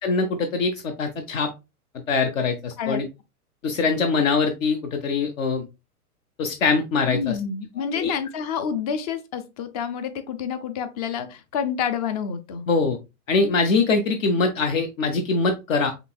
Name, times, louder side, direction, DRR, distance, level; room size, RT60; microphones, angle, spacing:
voice 1, 0.0-1.5 2.1-3.1 3.6-5.7 6.4-7.4 7.9-8.1 12.7-13.0 13.3-15.9, left 4 dB, 55° left, 0.8 m, -23 dB
voice 2, 7.1-12.6, left 7 dB, 25° left, 0.4 m, -28 dB
5.2 x 3.0 x 2.3 m
hypercardioid pair, 115°, 46 cm